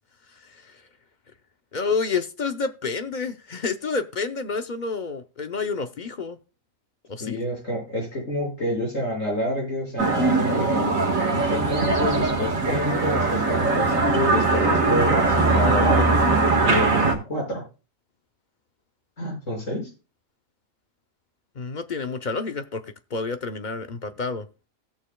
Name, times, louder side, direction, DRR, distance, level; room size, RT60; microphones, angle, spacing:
voice 1, 0.4-0.8 1.7-6.4 7.1-7.4 21.6-24.5, left 4 dB, 45° left, 9 dB, 0.7 m, -29 dB
voice 2, 7.2-10.9 11.3-17.6 19.2-19.9, left 1 dB, 65° left, -3 dB, 6.3 m, -28 dB
sound 1, 10.0-17.2, right 3 dB, 75° right, 2.0 m, -21 dB
18.0 x 6.7 x 2.2 m, 0.31 s
omnidirectional pair, 1.4 m